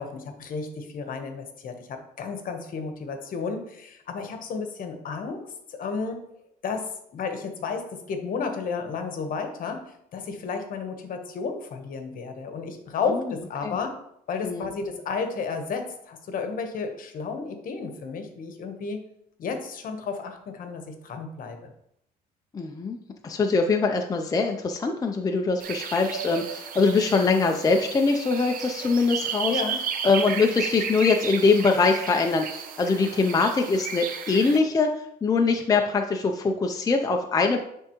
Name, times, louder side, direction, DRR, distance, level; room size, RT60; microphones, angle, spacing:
voice 1, 0.0-5.4 5.7-6.2 6.6-14.0 14.3-19.0 19.4-21.7 29.5-29.8, left 5 dB, 55° left, 6 dB, 1.1 m, -32 dB
voice 2, 22.5-23.0 23.2-29.6 30.0-37.6, left 4 dB, 20° left, 3 dB, 0.5 m, -23 dB
sound 1, 25.6-34.6, right 7 dB, 55° right, 0.8 m, -33 dB
9.8 x 3.5 x 3.0 m, 0.76 s
cardioid pair, 110°, 17 cm